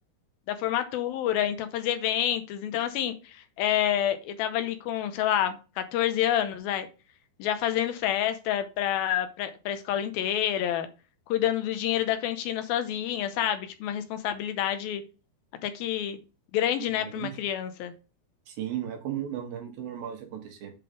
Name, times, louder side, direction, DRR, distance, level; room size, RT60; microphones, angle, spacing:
voice 1, 0.5-6.9 7.4-10.9 11.3-15.0 15.6-16.2 16.5-17.9, left 11 dB, 80° left, 2.5 m, -28 dB
voice 2, 18.5-20.7, right 10 dB, 70° right, 2.9 m, -35 dB
7.6 x 4.0 x 5.1 m
omnidirectional pair, 4.5 m